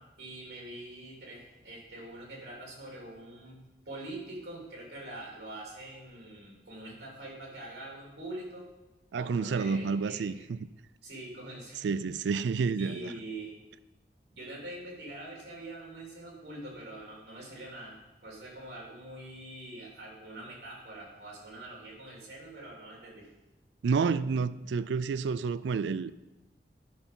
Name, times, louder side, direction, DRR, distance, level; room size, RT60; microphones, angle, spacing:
voice 1, 0.0-8.7 9.1-10.3 11.0-12.2 12.8-13.5 14.3-18.0 18.2-23.3, right 1 dB, 65° right, 3.3 m, -44 dB
voice 2, 9.1-10.6 11.8-13.1 23.8-26.1, right 5 dB, 85° right, 0.4 m, -29 dB
11.5 x 5.7 x 5.4 m
head